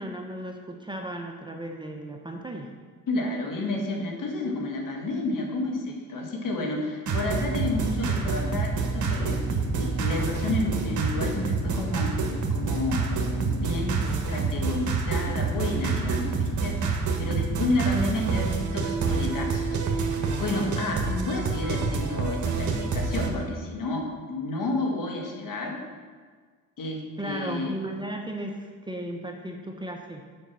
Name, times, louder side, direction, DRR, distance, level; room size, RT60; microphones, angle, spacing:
voice 1, 0.0-2.7 27.2-30.3, right 1 dB, 10° right, 2 dB, 0.8 m, -35 dB
voice 2, 3.1-12.1 12.5-13.9 14.3-25.8 26.8-27.8, left 2 dB, 55° left, 1 dB, 1.7 m, -31 dB
sound 1, 7.1-23.3, right 4 dB, 50° right, 1.3 m, -27 dB
7.0 x 5.2 x 5.8 m, 1.5 s
supercardioid pair, 70°, 39 cm